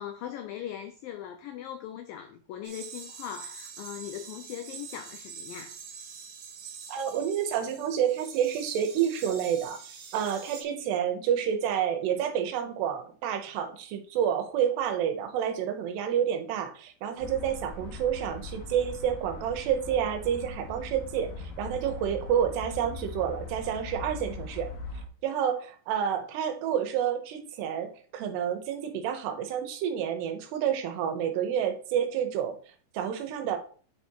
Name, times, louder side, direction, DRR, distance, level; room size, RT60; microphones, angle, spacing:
voice 1, 0.0-5.8, left 10 dB, 90° left, 2.0 m, -40 dB
sound 1, 2.6-10.6, right 6 dB, 60° right, 2.5 m, -45 dB
voice 2, 6.9-9.8 10.1-24.7 25.2-32.6 32.9-33.6, right 9 dB, 80° right, 3.0 m, -29 dB
sound 2, 17.2-25.1, left 3 dB, 60° left, 2.8 m, -40 dB
9.0 x 4.2 x 4.6 m
omnidirectional pair, 4.9 m